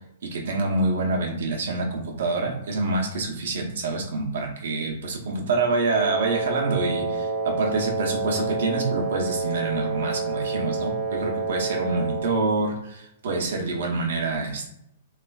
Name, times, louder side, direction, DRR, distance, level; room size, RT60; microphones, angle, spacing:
voice 1, 0.2-14.7, right 3 dB, 70° right, 1 dB, 0.7 m, -26 dB
Wind instrument woodwind instrument, 5.9-12.4, right 4 dB, 35° right, 0.6 m, -28 dB
3.2 x 2.4 x 2.3 m, 0.77 s
hypercardioid pair, 145°, 0 cm